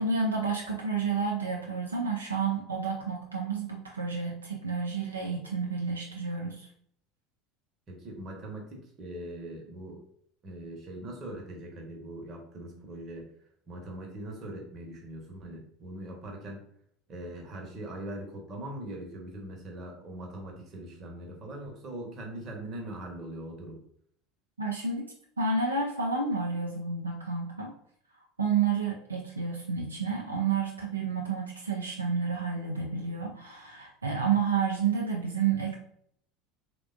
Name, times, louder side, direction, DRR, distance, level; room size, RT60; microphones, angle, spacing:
voice 1, 0.0-6.7 24.6-25.1 25.4-27.7 28.4-35.7, right 5 dB, 85° right, -1 dB, 0.3 m, -30 dB
voice 2, 7.9-10.0 10.4-13.3 13.7-16.7 17.1-23.8, right 1 dB, 35° right, 1 dB, 0.8 m, -41 dB
3.2 x 2.1 x 2.4 m, 0.65 s
figure-of-eight pair, 70°, 0 cm